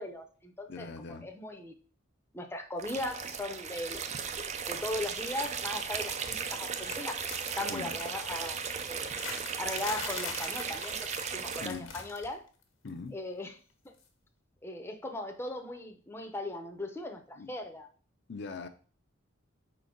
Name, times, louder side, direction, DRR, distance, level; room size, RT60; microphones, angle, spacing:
voice 1, 0.0-0.9 1.2-1.7 2.3-4.0 4.4-7.2 7.6-9.2 9.6-11.0 11.3-12.4 13.1-13.5 13.8-13.9 14.6-17.9, left 1 dB, 10° left, 4 dB, 0.6 m, -38 dB
voice 2, 0.7-1.3 7.7-8.0 11.6-11.9 12.8-13.2 17.4-17.5 18.3-18.7, left 4 dB, 55° left, 7 dB, 0.5 m, -41 dB
sound 1, 2.8-11.7, right 6 dB, 35° right, 0.5 m, -36 dB
sound 2, 5.0-5.4 5.7-6.5 6.8-12.4 12.6-12.9 14.0-14.1, left 5 dB, 90° left, 1.2 m, -44 dB
5.1 x 3.9 x 5.1 m, 0.41 s
head